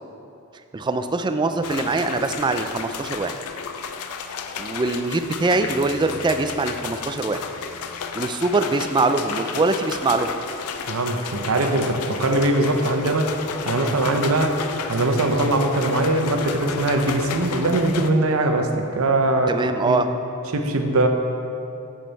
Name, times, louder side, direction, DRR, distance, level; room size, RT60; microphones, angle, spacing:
voice 1, 0.7-3.4 4.6-7.4 8.1-10.3 19.5-20.1, right 3 dB, 20° right, 8 dB, 0.3 m, -23 dB
sound 1, 1.6-18.1, left 6 dB, 85° left, 0.5 m, -32 dB
voice 2, 10.9-13.3 13.6-14.6 14.9-19.6 19.9-20.0 20.5-21.1, right 2 dB, 65° right, 5 dB, 0.7 m, -21 dB
7.5 x 7.4 x 4.0 m, 2.7 s
head